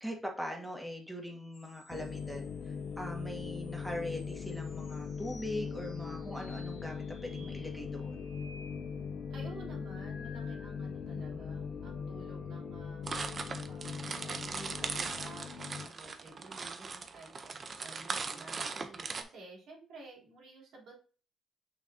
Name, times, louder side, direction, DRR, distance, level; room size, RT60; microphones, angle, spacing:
voice 1, 0.0-8.3 11.3-11.5 18.2-18.4, left 1 dB, 5° right, 0 dB, 2.0 m, -41 dB
sound 1, 1.5-11.1 11.5-12.9 14.7-15.9, left 2 dB, 45° left, 2.6 m, -59 dB
sound 2, 1.9-15.9, left 6 dB, 70° left, 0.6 m, -40 dB
voice 2, 9.3-13.3 13.7-20.9, right 3 dB, 75° right, -3 dB, 3.5 m, -52 dB
sound 3, 13.1-19.2, right 4 dB, 40° right, 0.8 m, -39 dB
6.1 x 6.0 x 2.8 m, 0.39 s
cardioid pair, 90°, 0 cm